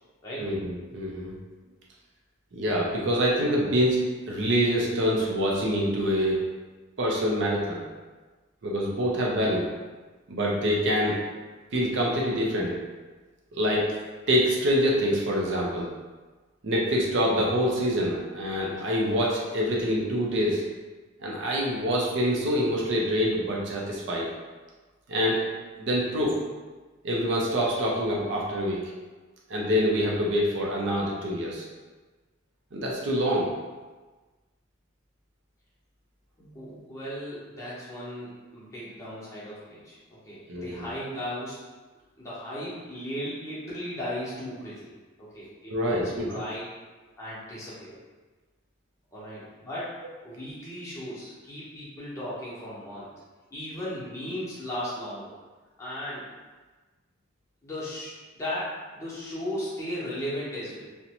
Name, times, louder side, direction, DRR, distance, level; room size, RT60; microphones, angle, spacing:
voice 1, 0.4-1.3 2.5-4.0 4.3-6.4 7.0-7.8 8.6-9.7 10.3-11.2 11.7-12.8 13.5-13.9 14.3-15.9 16.6-20.6 21.2-24.3 25.1-25.4 25.8-26.3 27.0-28.8 29.5-31.7 32.7-33.5 40.5-40.9 45.7-46.4, equal, 60° right, -3 dB, 0.5 m, -25 dB
voice 2, 36.4-41.6 42.2-44.9 45.2-46.6 47.2-47.9 49.1-49.9 50.2-53.1 53.5-55.3 55.8-56.3 57.6-60.9, equal, 15° left, -9 dB, 0.7 m, -36 dB
2.5 x 2.1 x 2.8 m, 1.3 s
head